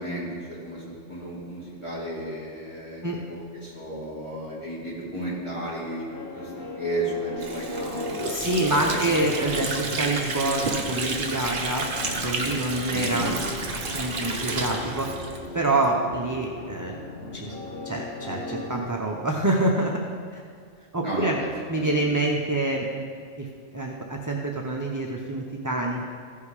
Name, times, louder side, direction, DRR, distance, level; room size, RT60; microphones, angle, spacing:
voice 1, 0.0-6.1 6.3-9.4 12.9-13.3 21.0-22.1, right 1 dB, 25° left, -8 dB, 2.9 m, -34 dB
sound 1, 6.1-18.8, left 3 dB, 50° left, 1.2 m, -37 dB
Water / Sink (filling or washing), 7.4-15.9, right 3 dB, 45° right, 1.0 m, -31 dB
voice 2, 8.3-13.4 13.9-15.1 15.5-16.9 17.2-17.6 17.8-20.0 20.3-20.4 20.9-21.4 21.7-23.1 23.4-23.5 23.7-26.1, right 2 dB, 20° right, -1 dB, 0.5 m, -26 dB
14.5 x 5.5 x 4.8 m, 2.1 s
omnidirectional pair, 1.3 m